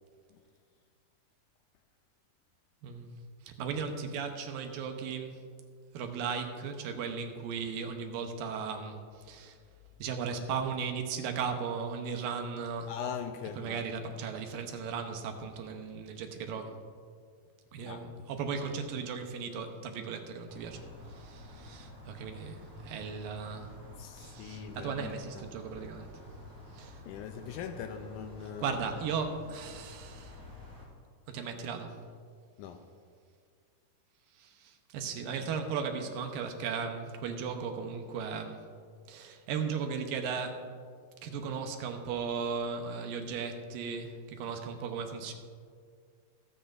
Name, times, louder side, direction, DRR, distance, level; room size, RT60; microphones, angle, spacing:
voice 1, 3.4-5.4 5.9-9.6 10.0-12.9 13.6-16.7 17.7-20.8 21.1-23.8 24.2-26.1 26.7-27.0 28.4-30.4 31.3-32.0 34.3-38.6 39.1-40.7 41.2-45.3, right 6 dB, 85° right, 5 dB, 2.7 m, -36 dB
voice 2, 12.9-13.9 17.9-18.1 24.0-25.5 27.1-28.8 32.6-32.8, left 7 dB, 80° left, 7 dB, 1.9 m, -41 dB
sound 1, 20.5-30.9, left 1 dB, 10° right, 1.5 m, -50 dB
25.0 x 8.8 x 2.6 m, 2.1 s
omnidirectional pair, 4.0 m